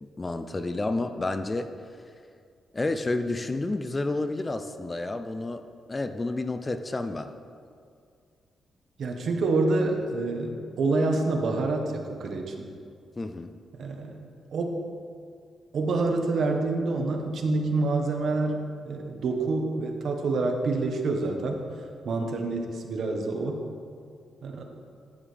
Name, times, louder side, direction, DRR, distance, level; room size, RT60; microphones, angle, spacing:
voice 1, 0.0-1.7 2.7-7.3 13.2-13.5, left 2 dB, 20° left, 9 dB, 0.4 m, -30 dB
voice 2, 9.0-12.7 13.8-14.2 14.5-14.7 15.7-18.6 18.9-21.6 22.0-23.6 24.4-24.6, right 3 dB, 60° right, 3 dB, 1.3 m, -27 dB
12.0 x 9.4 x 3.4 m, 2.2 s
cardioid pair, 135°, 0 cm